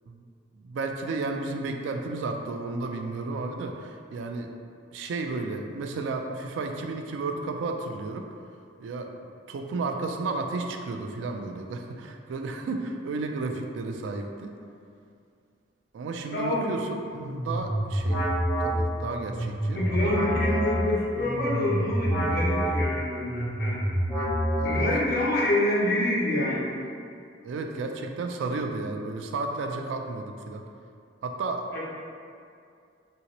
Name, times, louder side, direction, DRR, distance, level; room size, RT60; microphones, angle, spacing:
voice 1, 0.6-4.5 4.9-8.3 8.8-9.1 9.5-14.5 15.9-18.3 18.6-20.1 24.2-24.3 24.6-24.8 27.4-30.6 31.2-31.8, right 3 dB, 80° right, 4 dB, 0.3 m, -33 dB
voice 2, 16.3-16.7 19.7-23.8 24.6-26.7 31.7-31.8, left 1 dB, 60° left, -6 dB, 0.8 m, -27 dB
sound 1, 17.1-25.2, equal, 10° left, 1.0 m, -28 dB
2.8 x 2.7 x 2.9 m, 2.4 s
head